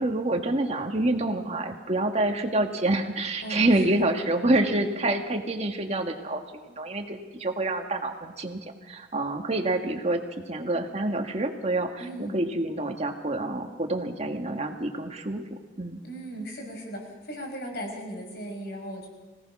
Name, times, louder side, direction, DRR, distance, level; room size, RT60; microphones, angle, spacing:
voice 1, 0.0-10.2 10.5-16.0, right 2 dB, 40° right, 4 dB, 1.9 m, -27 dB
voice 2, 3.4-4.1 12.0-12.4 16.0-19.1, right 1 dB, 65° left, 1 dB, 5.9 m, -37 dB
25.5 x 17.5 x 6.2 m, 1.3 s
head